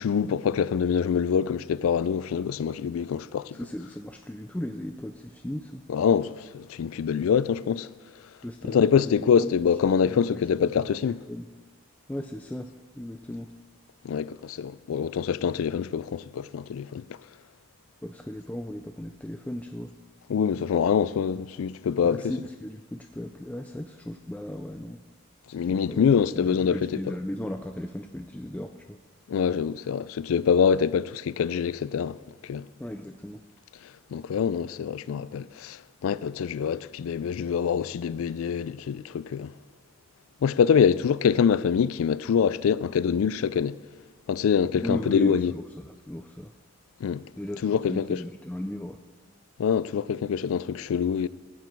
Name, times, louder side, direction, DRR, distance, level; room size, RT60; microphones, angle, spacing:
voice 1, 0.0-3.6 5.9-7.9 8.7-11.2 14.0-17.0 20.3-22.3 25.5-27.0 29.3-32.2 32.4-32.7 34.1-39.5 40.4-43.8 44.3-45.5 47.0-47.2 47.6-48.2 49.6-51.3, left 7 dB, 85° left, 0.3 m, -25 dB
voice 2, 3.5-5.8 8.4-9.5 10.0-11.5 12.1-13.5 18.0-19.9 22.0-25.0 25.6-29.0 32.8-33.4 44.8-46.5 47.4-49.0, left 1 dB, 5° left, 0.3 m, -36 dB
15.5 x 8.3 x 4.5 m
head